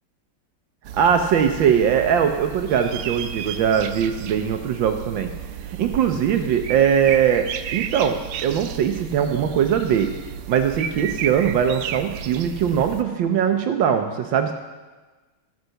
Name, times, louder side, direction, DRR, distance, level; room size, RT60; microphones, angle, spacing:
sound 1, 0.8-13.0, right 9 dB, 85° right, 1.5 m, -33 dB
voice 1, 1.0-5.3 5.6-10.1 10.5-14.5, right 8 dB, 70° right, 6 dB, 1.3 m, -21 dB
14.0 x 8.0 x 5.7 m, 1.3 s
omnidirectional pair, 2.4 m